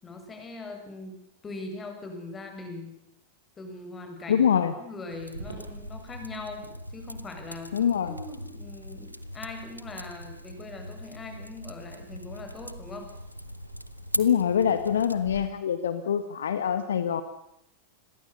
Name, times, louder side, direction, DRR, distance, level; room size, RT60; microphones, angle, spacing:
voice 1, 0.0-3.0 3.6-4.5 4.8-13.1, left 3 dB, 20° left, 5 dB, 6.9 m, -41 dB
voice 2, 4.3-4.7 7.7-8.1 14.2-17.2, left 8 dB, 65° left, 11 dB, 1.5 m, -24 dB
sound 1, 5.1-15.2, equal, 90° left, 1.1 m, -40 dB
sound 2, 5.3-15.4, right 3 dB, 75° right, 5.3 m, -50 dB
29.0 x 22.0 x 6.9 m, 0.77 s
figure-of-eight pair, 90°, 0 cm